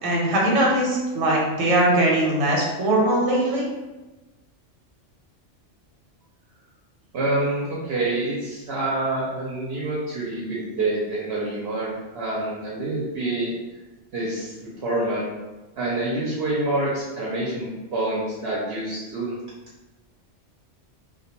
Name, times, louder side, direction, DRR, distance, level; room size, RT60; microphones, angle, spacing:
voice 1, 0.0-3.7, right 1 dB, 90° right, -3 dB, 1.0 m, -21 dB
voice 2, 7.1-13.5 14.1-15.3 15.8-19.4, right 2 dB, 65° right, -6 dB, 0.7 m, -27 dB
2.2 x 2.2 x 2.8 m, 1.1 s
omnidirectional pair, 1.3 m